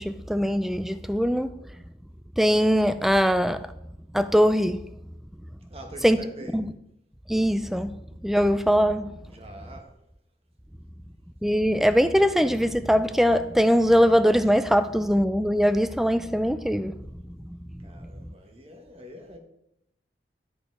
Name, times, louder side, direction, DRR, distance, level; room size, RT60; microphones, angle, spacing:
voice 1, 0.0-1.5 2.4-3.7 4.1-4.9 6.0-6.2 6.5-6.7 7.3-9.1 11.4-17.0 17.4-17.6 18.2-18.3, equal, ahead, 0.3 m, -22 dB
voice 2, 5.7-6.6 9.3-9.9 17.8-19.4, right 1 dB, 35° right, 1.3 m, -44 dB
12.0 x 5.1 x 4.7 m
head